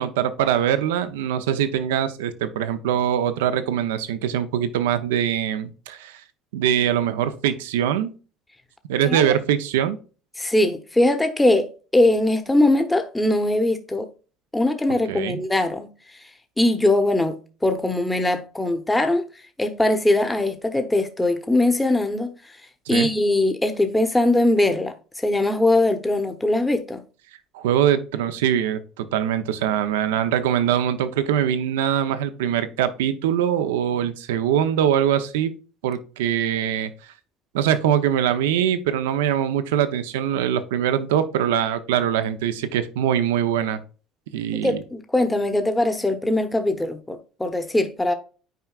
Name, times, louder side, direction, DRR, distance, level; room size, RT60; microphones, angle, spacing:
voice 1, 0.0-6.2 6.5-8.1 8.9-10.0 15.1-15.4 22.9-23.1 27.5-35.5 35.8-36.9 37.5-43.8 44.3-44.8, right 10 dB, 85° right, 0.6 m, -23 dB
voice 2, 10.4-14.1 14.5-15.9 16.6-19.2 19.6-22.3 22.9-27.0 44.5-48.1, left 1 dB, 10° left, 0.8 m, -21 dB
9.2 x 4.6 x 2.4 m
supercardioid pair, 85°, 0 cm